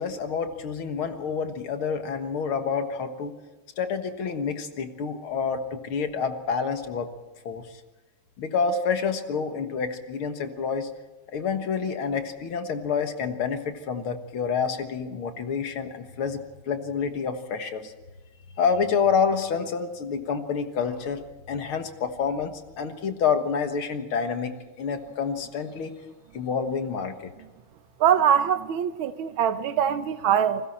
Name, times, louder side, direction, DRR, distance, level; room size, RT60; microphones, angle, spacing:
voice 1, 0.0-3.4 3.8-7.1 7.4-7.7 8.4-10.9 11.3-17.9 18.6-25.9 26.3-27.3, left 6 dB, 90° left, 2.4 m, -28 dB
voice 2, 28.0-30.7, right 8 dB, 75° right, 1.8 m, -23 dB
29.5 x 20.5 x 4.3 m
omnidirectional pair, 2.2 m